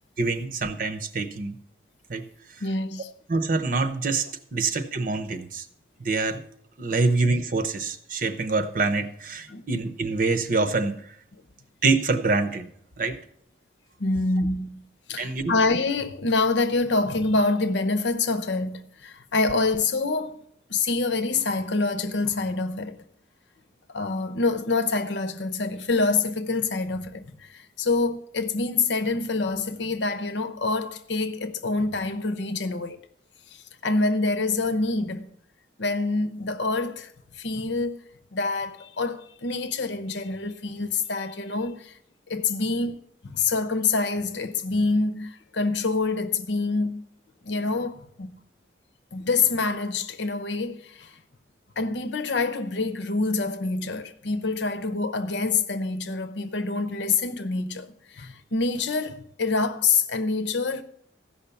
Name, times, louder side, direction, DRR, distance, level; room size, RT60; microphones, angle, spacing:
voice 1, 0.2-1.5 2.1-2.2 3.3-5.6 6.0-6.4 6.8-10.9 11.8-12.7 13.0-13.2 15.2-15.5, right 3 dB, 45° right, 0.8 m, -25 dB
voice 2, 2.6-3.1 9.5-9.6 14.0-20.4 20.7-23.0 23.9-33.0 33.5-35.3 35.8-42.0 42.3-47.1 47.4-48.4 49.1-51.2 51.8-60.8, left 3 dB, 75° left, 0.8 m, -26 dB
14.5 x 5.7 x 6.9 m
head